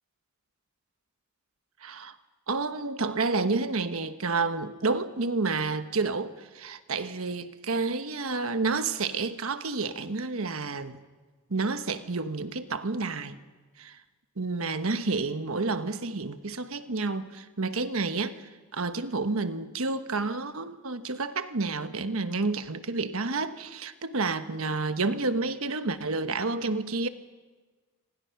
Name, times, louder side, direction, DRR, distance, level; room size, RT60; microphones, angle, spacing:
voice 1, 1.8-2.1 2.5-11.0 11.5-13.4 13.8-14.0 14.4-27.1, right 3 dB, 70° right, 1.2 m, -30 dB
27.0 x 26.0 x 5.9 m
head